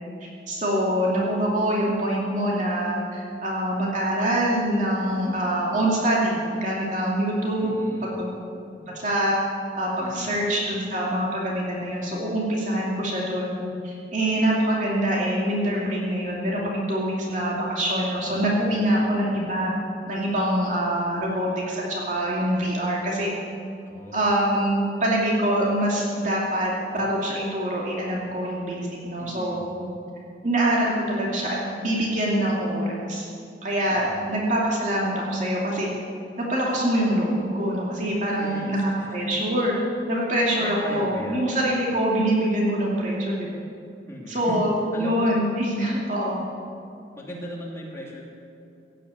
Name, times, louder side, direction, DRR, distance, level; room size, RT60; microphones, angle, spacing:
voice 1, 0.2-8.3 8.9-9.4 9.8-19.7 20.1-23.3 24.1-29.6 30.4-33.3 33.6-35.9 36.4-39.7 40.1-43.5 44.3-44.7 45.0-46.4, right 1 dB, 40° right, -4 dB, 2.6 m, -25 dB
voice 2, 7.6-8.2 10.0-10.5 18.3-19.1 23.9-24.3 29.2-29.7 33.9-34.4 38.4-39.2 40.6-41.6 44.1-44.7 44.9-45.3 47.1-48.2, left 1 dB, 15° left, -4 dB, 2.9 m, -38 dB
16.5 x 9.2 x 8.5 m, 2.5 s
head